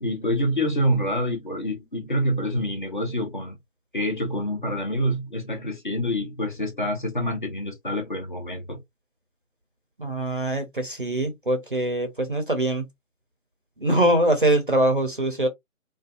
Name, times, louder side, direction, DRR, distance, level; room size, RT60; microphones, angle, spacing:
voice 1, 0.0-3.6 3.9-8.8, equal, 35° left, 0.7 m, -26 dB
voice 2, 10.0-12.9 13.8-15.5, right 1 dB, 40° right, 0.5 m, -23 dB
2.4 x 2.3 x 2.3 m
figure-of-eight pair, 160°, 40 cm